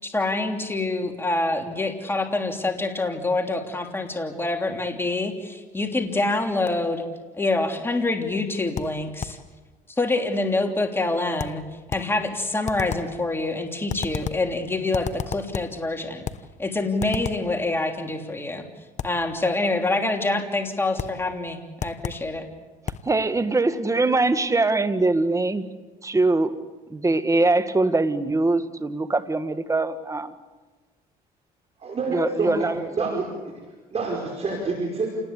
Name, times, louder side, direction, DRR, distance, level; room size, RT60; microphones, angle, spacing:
voice 1, 0.0-7.0 7.4-9.4 9.9-11.6 11.9-16.2 16.6-18.7 19.0-22.5, left 2 dB, 15° left, 3 dB, 3.2 m, -26 dB
sound 1, 8.8-9.5 11.4-12.2 12.7-13.2 13.9-14.5 14.9-15.8 16.2-16.5 17.0-17.5 19.0-19.3 21.0-21.3 21.8-22.3 22.9-23.1, left 7 dB, 45° left, 1.0 m, -33 dB
voice 2, 23.1-25.6 26.0-26.6 26.9-30.3 32.1-33.2, right 2 dB, 20° right, 10 dB, 1.8 m, -22 dB
voice 3, 31.8-33.2 33.9-35.1, right 3 dB, 40° right, 0 dB, 5.2 m, -27 dB
28.5 x 19.5 x 8.4 m, 1.3 s
cardioid pair, 90°, 16 cm